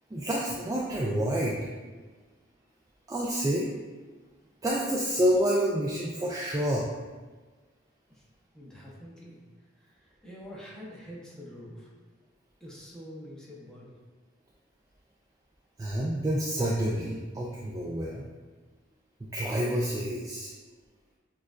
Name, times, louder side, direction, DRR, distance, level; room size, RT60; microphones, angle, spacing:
voice 1, 0.1-1.6 3.1-3.7 4.6-6.9 15.8-18.2 19.2-20.5, equal, 20° right, -4 dB, 0.3 m, -28 dB
voice 2, 8.5-11.9 12.6-13.9, equal, 5° left, -6 dB, 0.8 m, -46 dB
6.3 x 2.3 x 2.4 m, 1.3 s
head